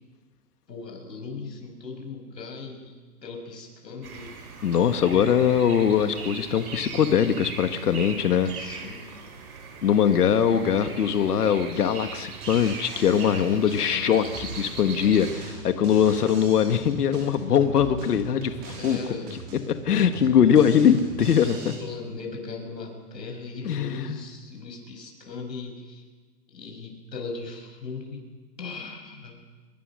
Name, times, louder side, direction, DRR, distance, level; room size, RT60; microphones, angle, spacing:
voice 1, 0.7-4.4 8.5-9.1 13.3-14.3 18.7-19.4 20.5-20.8 21.6-26.1 26.5-28.2 28.6-29.4, left 4 dB, 90° left, 3 dB, 7.5 m, -38 dB
sound 1, 4.0-15.3, right 4 dB, 60° right, 6.1 m, -40 dB
voice 2, 4.6-8.5 9.8-19.0 19.7-21.7 23.7-24.2, left 8 dB, 65° left, 9 dB, 1.8 m, -22 dB
Drum kit, 12.4-21.8, right 3 dB, 20° right, 4.2 m, -41 dB
24.5 x 22.5 x 6.5 m, 1.4 s
hypercardioid pair, 165°, 49 cm